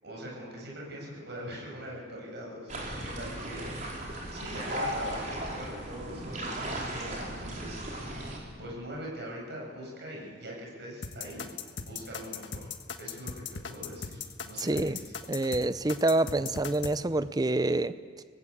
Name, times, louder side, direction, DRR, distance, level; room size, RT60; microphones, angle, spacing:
voice 1, 0.0-3.8 4.3-8.2 8.6-11.5 11.9-12.7 13.0-13.3 13.7-15.1, equal, 60° right, -2 dB, 7.7 m, -42 dB
sound 1, 2.7-8.4, right 1 dB, 40° right, 4.5 m, -36 dB
sound 2, 11.0-17.0, left 6 dB, 70° left, 1.5 m, -38 dB
voice 2, 14.6-15.0 15.3-18.2, right 2 dB, 20° right, 13 dB, 0.6 m, -27 dB
24.5 x 19.0 x 8.6 m, 2.2 s
head